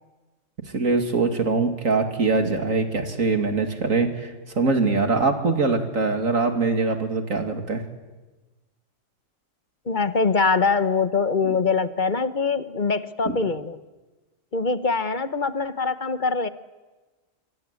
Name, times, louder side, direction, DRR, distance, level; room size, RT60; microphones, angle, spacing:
voice 1, 0.7-7.8 11.4-11.6 13.2-13.4, right 3 dB, 80° right, 6 dB, 2.9 m, -23 dB
voice 2, 9.9-13.8 14.5-16.5, left 4 dB, 40° left, 12 dB, 1.1 m, -23 dB
26.5 x 23.0 x 8.4 m, 1.2 s
omnidirectional pair, 1.4 m